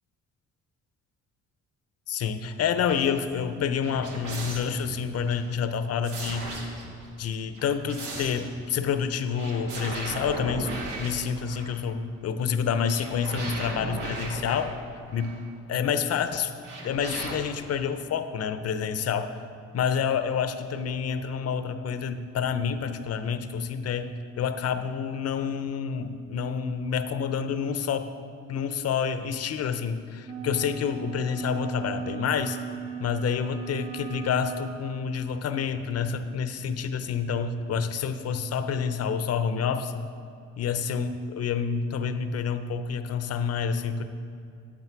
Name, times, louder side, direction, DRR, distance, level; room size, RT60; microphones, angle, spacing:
voice 1, 2.1-6.8 7.2-14.7 15.1-15.4 15.7-16.5 16.8-19.4 19.7-28.1 28.5-32.6 33.0-40.0 40.6-44.0, left 6 dB, 55° left, 10 dB, 0.6 m, -28 dB
sound 1, 2.8-5.7, right 5 dB, 20° right, 1.4 m, -48 dB
sound 2, 2.9-3.1 3.8-5.4 6.0-7.1 7.6-8.5 9.3-11.8 12.9-15.4 16.6-17.4, right 2 dB, 85° right, 1.6 m, -37 dB
sound 3, 30.2-34.9, right 8 dB, 60° right, 1.1 m, -37 dB
8.5 x 8.3 x 4.6 m, 2.5 s
cardioid pair, 90°, 30 cm